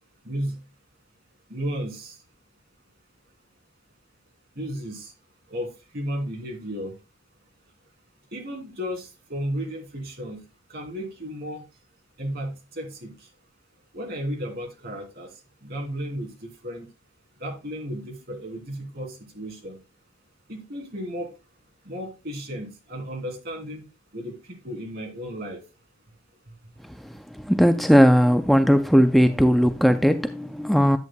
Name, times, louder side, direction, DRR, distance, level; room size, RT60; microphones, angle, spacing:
voice 1, 0.2-0.6 1.5-2.2 4.6-5.1 5.5-5.7 5.9-6.9 8.3-10.4 10.7-11.6 12.2-13.1 13.9-15.3 15.6-16.3 16.6-16.9 17.4-19.8 20.5-21.3 21.9-23.8 24.1-24.3 24.6-25.6, equal, 50° right, 2.5 m, -33 dB
voice 2, 26.8-31.0, equal, ahead, 0.3 m, -18 dB
11.0 x 8.1 x 2.2 m
head